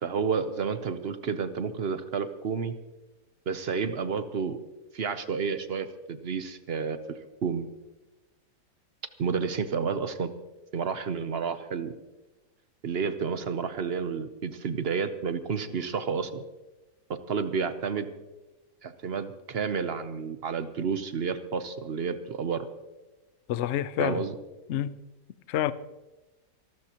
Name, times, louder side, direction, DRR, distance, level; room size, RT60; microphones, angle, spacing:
voice 1, 0.0-2.7 3.5-4.6 4.9-7.0 7.4-7.7 9.2-10.3 10.7-11.9 12.8-16.4 17.1-18.1 18.8-22.6 24.0-24.3, right 6 dB, 50° right, 0.8 m, -30 dB
voice 2, 23.5-24.2 24.7-25.0 25.5-25.7, left 11 dB, 70° left, 0.6 m, -28 dB
24.5 x 13.0 x 2.9 m
omnidirectional pair, 1.8 m